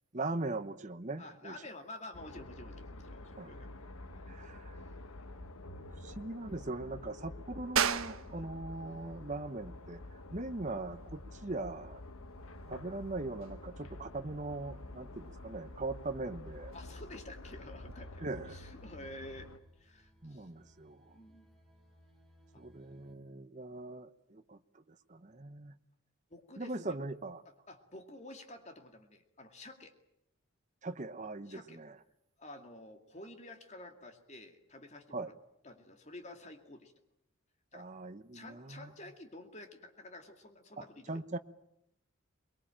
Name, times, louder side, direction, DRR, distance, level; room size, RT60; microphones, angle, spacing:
voice 1, 0.1-1.6 3.4-3.5 4.3-4.8 5.9-10.0 10.3-12.0 12.7-16.7 18.2-18.6 20.2-21.1 22.5-24.8 25.1-25.7 26.6-27.4 30.8-32.0 35.1-35.3 37.7-38.9 40.8-41.4, right 2 dB, 35° right, 1.0 m, -40 dB
voice 2, 1.2-3.7 4.1-4.7 8.3-8.5 10.3-10.4 16.7-19.5 19.8-20.5 21.1-21.5 22.5-22.6 26.3-27.0 27.7-29.9 31.5-31.8 32.4-35.3 35.6-36.9 37.7-37.9 38.3-41.2, left 1 dB, 30° left, 2.3 m, -50 dB
sound 1, 2.1-19.6, left 2 dB, 75° left, 1.5 m, -49 dB
sound 2, 7.8-18.0, right 7 dB, 70° right, 1.2 m, -41 dB
sound 3, 14.0-23.1, equal, ahead, 4.3 m, -66 dB
24.0 x 22.0 x 8.9 m
head